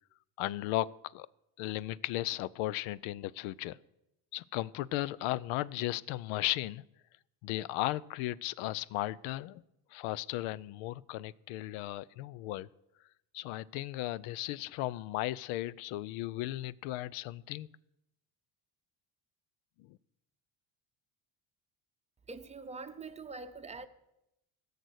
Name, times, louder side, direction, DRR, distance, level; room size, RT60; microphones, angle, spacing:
voice 1, 0.4-0.9 1.1-1.3 1.6-3.8 4.3-6.8 7.4-9.6 9.9-12.7 13.3-17.7 19.9-20.0, left 16 dB, 90° left, 0.5 m, -35 dB
voice 2, 22.3-23.9, right 4 dB, 15° right, 0.7 m, -44 dB
16.0 x 6.8 x 6.3 m
cardioid pair, 120°, 47 cm